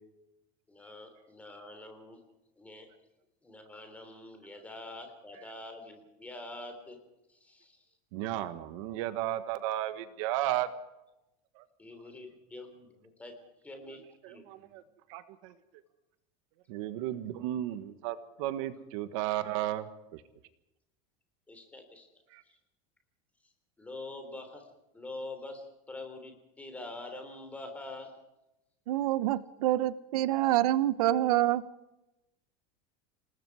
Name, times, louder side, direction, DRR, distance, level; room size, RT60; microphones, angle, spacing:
voice 1, 0.7-2.2 2.6-2.9 3.4-7.0 7.3-7.9 11.8-13.4 13.6-14.8 21.5-22.1 22.4-22.6 23.4-23.5 23.8-24.7 24.9-28.1, left 2 dB, 5° left, 5 dB, 3.3 m, -45 dB
voice 2, 8.1-10.7 11.6-11.7 14.2-14.8 15.1-15.5 16.7-20.2 22.3-22.4, right 13 dB, 55° right, 11 dB, 1.5 m, -34 dB
voice 3, 28.9-31.7, right 14 dB, 85° right, 16 dB, 0.9 m, -27 dB
28.0 x 19.5 x 4.8 m, 0.93 s
supercardioid pair, 175°, 19 cm